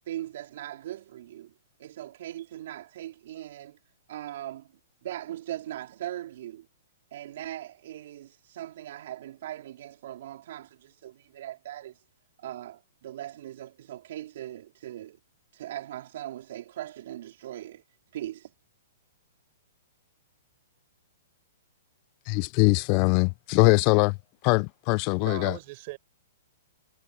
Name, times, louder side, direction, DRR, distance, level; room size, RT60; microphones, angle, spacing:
voice 1, 0.1-1.5 1.8-3.8 4.1-4.7 5.0-6.7 7.1-12.0 12.4-15.2 15.5-17.8 18.1-18.5, right 13 dB, 60° right, 3.3 m, -39 dB
voice 2, 22.3-24.1 24.4-25.6, left 30 dB, 40° left, 0.4 m, -22 dB
voice 3, 25.2-26.0, right 23 dB, 45° right, 4.8 m, -39 dB
hypercardioid pair, 130°, 0 cm